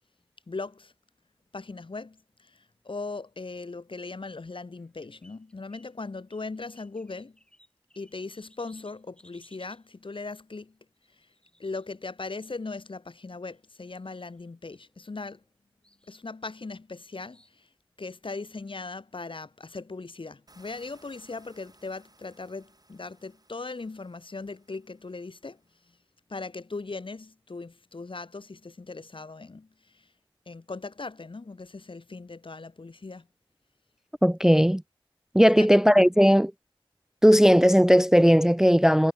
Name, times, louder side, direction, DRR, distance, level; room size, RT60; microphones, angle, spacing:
voice 1, 0.5-0.9 1.5-2.2 2.4-2.5 2.8-7.4 7.9-10.7 11.6-15.4 16.1-17.4 18.0-25.6 26.3-29.7 30.5-33.3 35.4-35.7, left 3 dB, 65° left, 1.6 m, -39 dB
sound 1, 4.8-5.9 6.3-9.9 11.0-12.4 13.3-13.6 13.9-14.5 14.7-15.5 15.8-16.2 17.1-17.6, equal, 10° left, 7.3 m, -61 dB
sound 2, 20.5-26.0, right 2 dB, 40° right, 5.1 m, -61 dB
voice 2, 34.2-34.8 35.3-36.5 37.2-39.1, equal, 5° right, 0.3 m, -17 dB
wide cardioid pair, 60°, 9 cm